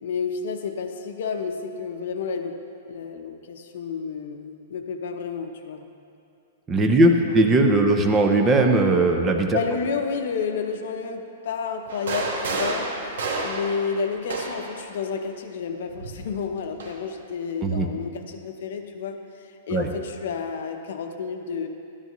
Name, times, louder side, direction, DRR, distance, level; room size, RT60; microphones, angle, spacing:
voice 1, 0.0-2.6 2.9-5.9 7.0-7.4 7.8-7.9 9.5-12.9 13.4-21.7, left 5 dB, 60° left, 5 dB, 0.8 m, -31 dB
voice 2, 6.7-9.6 17.6-17.9 19.7-19.9, right 2 dB, 15° right, 4 dB, 0.6 m, -19 dB
sound 1, 11.9-14.8 15.9-17.0, right 3 dB, 80° right, 1.5 m, -30 dB
12.0 x 10.5 x 3.1 m, 2.7 s
supercardioid pair, 170°, 0 cm